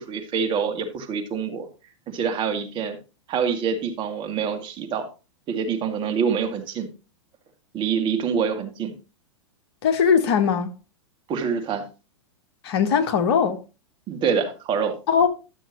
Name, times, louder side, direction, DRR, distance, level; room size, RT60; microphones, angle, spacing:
voice 1, 0.0-1.7 2.1-3.0 3.3-5.1 5.5-6.9 7.7-8.9 11.3-11.9 14.1-14.9, right 6 dB, 30° right, 2.1 m, -26 dB
voice 2, 9.8-10.7 12.6-13.6 15.1-15.3, left 7 dB, 55° left, 1.4 m, -20 dB
12.0 x 7.1 x 3.0 m
figure-of-eight pair, 105°, 16 cm